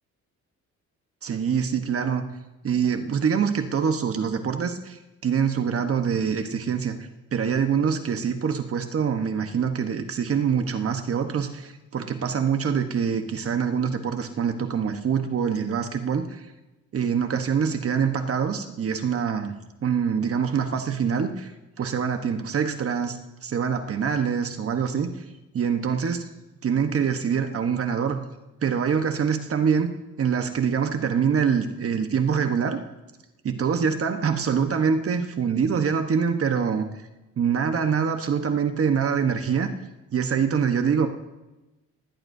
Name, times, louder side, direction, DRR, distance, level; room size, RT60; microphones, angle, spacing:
voice 1, 1.2-2.2 2.6-16.5 16.9-19.5 19.8-21.5 21.8-25.1 25.5-26.3 26.6-28.2 28.6-29.9 30.2-32.8 33.4-36.9 37.4-39.7 40.1-41.1, right 7 dB, 50° right, 7 dB, 1.2 m, -25 dB
19.5 x 16.0 x 2.7 m, 1.0 s
cardioid pair, 90°, 30 cm